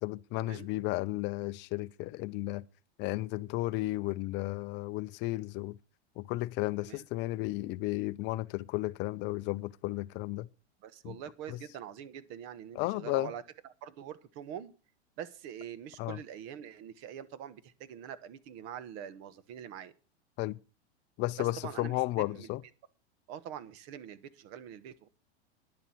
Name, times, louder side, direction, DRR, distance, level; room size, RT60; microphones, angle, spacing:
voice 1, 0.0-2.6 3.0-5.8 6.2-10.5 11.0-11.1 11.5-11.6 12.8-13.3 16.0-16.2 20.4-20.6 21.2-22.6, left 19 dB, 35° left, 0.5 m, -33 dB
voice 2, 10.8-14.7 15.2-19.9 21.4-22.5 23.3-25.1, right 9 dB, 45° right, 1.2 m, -44 dB
10.5 x 6.9 x 7.8 m
hypercardioid pair, 130°, 34 cm